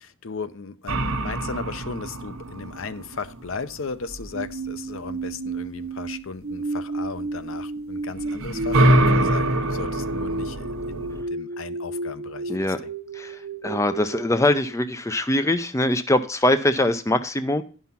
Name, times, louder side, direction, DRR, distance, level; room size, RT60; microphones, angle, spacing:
voice 1, 0.0-12.7, left 4 dB, 70° left, 0.7 m, -36 dB
sound 1, 0.9-4.6 8.1-11.2, right 1 dB, 85° right, 1.2 m, -24 dB
sound 2, 4.3-14.7, right 2 dB, 50° right, 0.7 m, -32 dB
voice 2, 9.0-9.3 12.5-12.8 13.1-17.6, left 1 dB, 15° left, 0.5 m, -23 dB
10.5 x 5.6 x 5.8 m
head